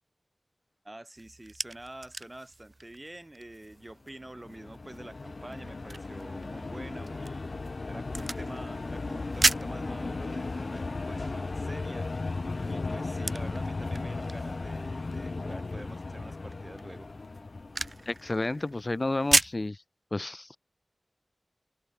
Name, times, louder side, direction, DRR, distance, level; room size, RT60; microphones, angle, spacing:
voice 1, 0.8-12.1 12.7-17.1, right 1 dB, 30° right, 4.9 m, -46 dB
sound 1, 1.2-19.7, right 2 dB, 55° right, 0.9 m, -36 dB
sound 2, 4.1-18.6, left 3 dB, 80° left, 1.6 m, -36 dB
voice 2, 18.0-19.8 20.1-20.6, left 2 dB, 50° left, 1.5 m, -31 dB
open air
wide cardioid pair, 50°, 0 cm